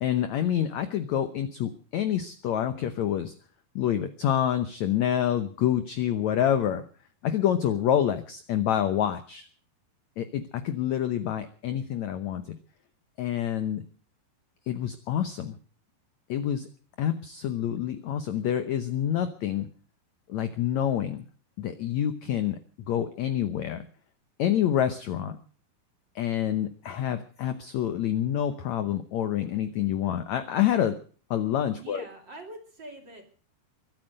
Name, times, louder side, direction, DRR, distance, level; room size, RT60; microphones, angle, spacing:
voice 1, 0.0-3.3 3.7-6.8 7.2-9.5 10.2-12.6 13.2-13.8 14.7-15.5 16.3-16.7 17.0-19.7 20.3-21.3 21.6-22.6 22.9-23.9 24.4-25.4 26.1-31.0 31.3-32.0, left 10 dB, 80° left, 10 dB, 1.6 m, -27 dB
voice 2, 31.8-33.2, right 1 dB, 30° right, 3 dB, 3.0 m, -44 dB
23.5 x 9.1 x 6.6 m, 0.42 s
omnidirectional pair, 4.5 m